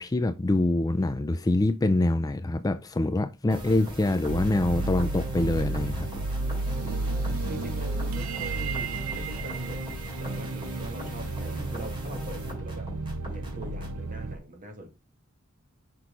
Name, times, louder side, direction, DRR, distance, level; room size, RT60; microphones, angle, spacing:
voice 1, 0.0-6.1, left 2 dB, 15° left, 0.4 m, -25 dB
sound 1, 3.5-14.0, equal, 25° right, 2.9 m, -40 dB
sound 2, 4.3-14.4, right 2 dB, 90° right, 0.7 m, -32 dB
voice 2, 6.8-9.8 10.2-12.9 13.3-14.9, right 1 dB, 40° right, 2.2 m, -43 dB
6.1 x 5.9 x 3.8 m
head